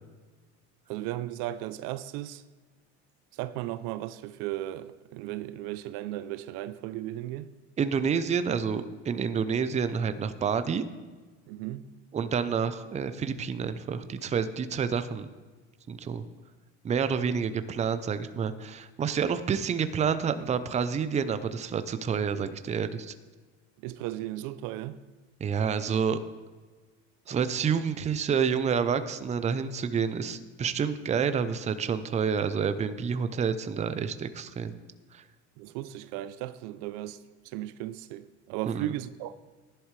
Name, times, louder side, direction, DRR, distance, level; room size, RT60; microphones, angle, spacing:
voice 1, 0.9-2.4 3.3-7.5 11.5-11.8 23.8-25.0 35.6-39.4, right 14 dB, 65° right, 0.6 m, -36 dB
voice 2, 7.8-10.8 12.1-15.3 15.9-16.2 16.8-23.1 25.4-26.2 27.3-34.8 35.1-35.2 38.7-38.9, right 6 dB, 20° right, 0.6 m, -28 dB
15.0 x 11.0 x 3.3 m
supercardioid pair, 110°, 34 cm